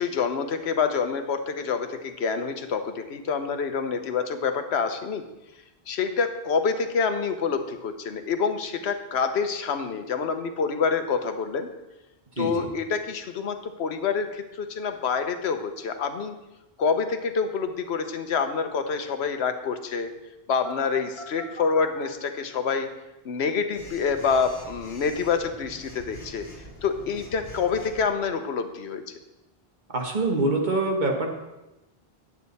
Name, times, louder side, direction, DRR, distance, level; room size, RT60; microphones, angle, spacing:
voice 1, 0.0-5.2 5.9-11.7 12.4-16.4 16.8-20.1 20.5-22.9 23.2-26.5 26.8-29.0, left 5 dB, 90° left, 7 dB, 1.1 m, -27 dB
voice 2, 12.4-12.7 29.9-31.3, right 2 dB, 50° right, 1 dB, 1.5 m, -25 dB
Telephone, 20.6-22.0 23.7-28.1, left 1 dB, 70° left, 2.1 m, -44 dB
9.6 x 8.1 x 4.1 m, 0.99 s
omnidirectional pair, 1.1 m